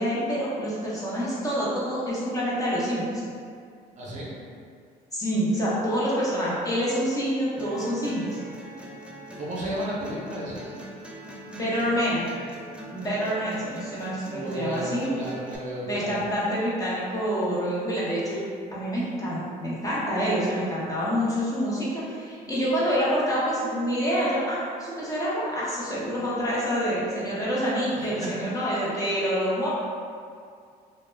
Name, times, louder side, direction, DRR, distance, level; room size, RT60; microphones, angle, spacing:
voice 1, 0.0-3.2 5.1-8.4 11.5-12.3 12.9-15.1 15.8-18.4 18.7-29.7, equal, 20° left, -8 dB, 0.7 m, -27 dB
voice 2, 4.0-4.4 9.3-10.8 14.2-16.2 27.9-28.1, equal, 45° right, -6 dB, 0.7 m, -33 dB
sound 1, 7.6-15.6, equal, 5° right, 0.3 m, -42 dB
2.2 x 2.0 x 3.2 m, 2.3 s
cardioid pair, 110°, 17 cm